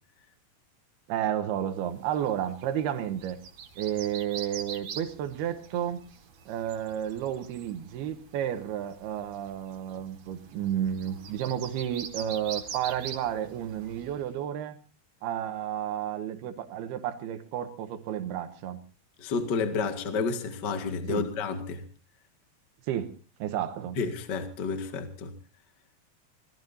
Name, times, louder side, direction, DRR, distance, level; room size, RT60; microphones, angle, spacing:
voice 1, 1.1-3.4 3.8-6.0 6.5-14.8 15.2-18.8 21.1-21.3 22.9-24.0, right 10 dB, 85° right, 3.2 m, -32 dB
sound 1, 1.8-14.3, right 7 dB, 55° right, 2.3 m, -44 dB
voice 2, 19.2-21.8 24.0-25.3, left 5 dB, 40° left, 1.8 m, -30 dB
26.5 x 18.5 x 2.7 m
omnidirectional pair, 4.5 m